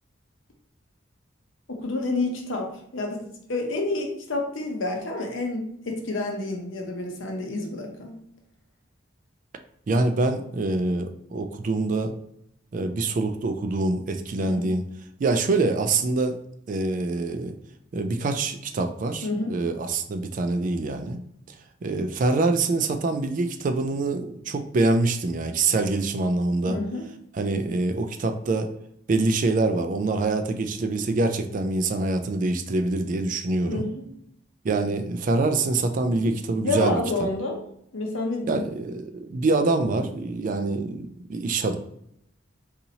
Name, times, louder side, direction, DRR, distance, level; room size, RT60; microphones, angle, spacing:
voice 1, 1.7-8.2 14.4-14.7 19.2-19.5 26.7-27.1 33.7-34.1 36.6-37.6 37.9-38.7, left 2 dB, 70° left, 2 dB, 0.8 m, -29 dB
voice 2, 9.9-12.1 12.7-14.9 15.2-16.4 16.7-17.5 17.9-21.3 21.8-26.8 27.3-28.7 29.1-33.9 34.6-37.0 38.5-41.8, right 3 dB, 40° right, 7 dB, 0.3 m, -25 dB
4.1 x 2.8 x 2.7 m, 0.73 s
head